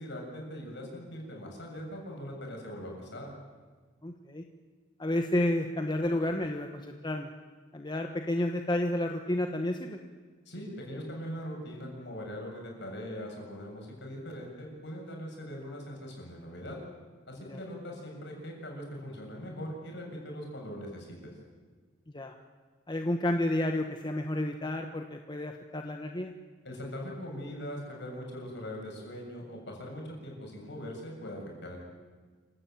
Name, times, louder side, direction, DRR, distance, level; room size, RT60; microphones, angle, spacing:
voice 1, 0.0-3.3 10.5-16.8 17.3-21.3 26.6-31.8, equal, 60° left, 0 dB, 7.1 m, -41 dB
voice 2, 4.0-4.4 5.0-7.3 7.7-10.0 17.4-17.6 22.1-22.3 22.9-26.3, left 1 dB, 20° left, 4 dB, 1.1 m, -31 dB
27.0 x 16.0 x 9.1 m, 1.5 s
head